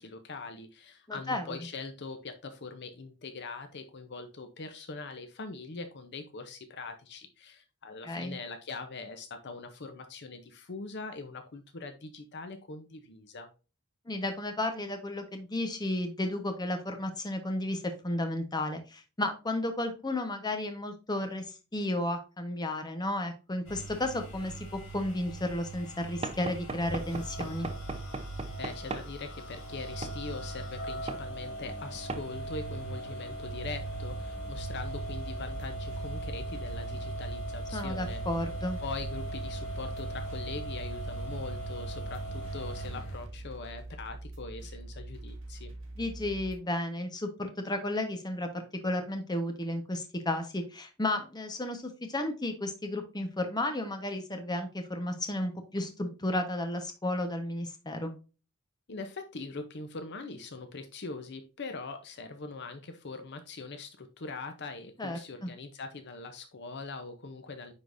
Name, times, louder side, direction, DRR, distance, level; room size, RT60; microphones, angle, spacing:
voice 1, 0.0-13.5 28.6-38.2 38.8-45.7 58.9-67.7, left 3 dB, 50° left, 7 dB, 0.7 m, -42 dB
voice 2, 1.1-1.7 8.0-8.4 14.1-27.7 37.7-38.8 46.0-58.1 65.0-65.5, left 1 dB, 20° left, 6 dB, 1.0 m, -33 dB
sound 1, 23.6-43.2, right 2 dB, 70° left, 2.5 m, -39 dB
Knock / Wood, 26.2-29.1 30.0-30.2 31.1-31.3 32.1-32.3, right 3 dB, 25° right, 0.6 m, -38 dB
sound 2, 33.5-46.6, right 1 dB, 60° right, 1.8 m, -43 dB
9.5 x 3.9 x 2.6 m, 0.32 s
head